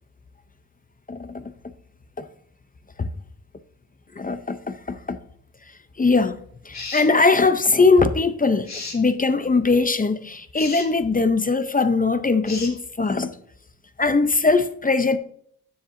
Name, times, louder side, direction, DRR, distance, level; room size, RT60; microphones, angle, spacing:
voice 1, 4.2-5.2 6.0-6.4 6.7-13.3 14.0-15.2, left 3 dB, 25° left, 0.5 m, -20 dB
sound 1, 6.7-7.1 8.7-9.0 10.5-10.9 12.4-12.7, left 4 dB, 45° left, 1.7 m, -34 dB
10.0 x 7.1 x 2.5 m
wide cardioid pair, 155°, 36 cm